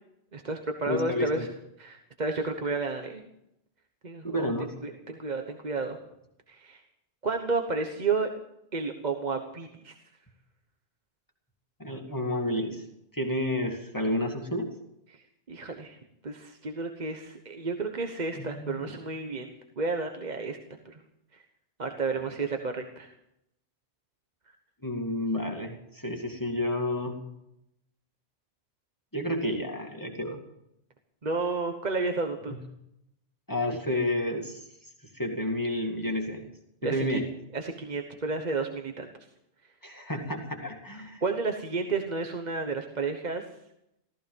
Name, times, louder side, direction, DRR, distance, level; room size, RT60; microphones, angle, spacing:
voice 1, 0.3-1.5 1.8-3.2 4.0-4.5 4.8-6.0 6.5-6.8 7.2-8.3 8.7-9.9 15.5-16.0 16.2-19.5 19.8-20.6 20.8-21.0 21.8-23.1 31.2-32.6 36.8-37.2 37.5-39.1 41.2-43.5, right 4 dB, 40° right, 4 dB, 1.2 m, -31 dB
voice 2, 0.9-1.5 4.2-4.7 11.8-12.8 13.1-14.7 18.3-18.9 24.8-27.1 29.1-30.4 33.5-34.6 35.1-36.5 36.8-37.3 39.8-41.2, left 1 dB, 15° left, 1 dB, 2.1 m, -30 dB
15.0 x 14.5 x 5.3 m, 0.81 s
omnidirectional pair, 1.1 m